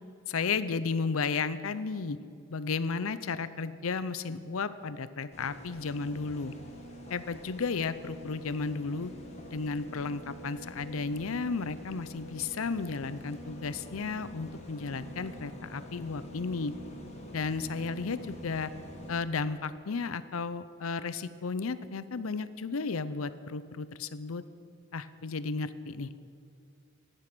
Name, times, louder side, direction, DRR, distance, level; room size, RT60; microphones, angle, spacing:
voice 1, 0.3-2.2 2.5-6.5 7.1-9.1 9.5-16.7 17.3-18.7 19.1-24.4 24.9-26.1, left 4 dB, 85° left, 14 dB, 0.6 m, -33 dB
sound 1, 5.3-19.1, equal, 30° left, 1.8 m, -46 dB
15.0 x 10.5 x 6.1 m, 2.4 s
head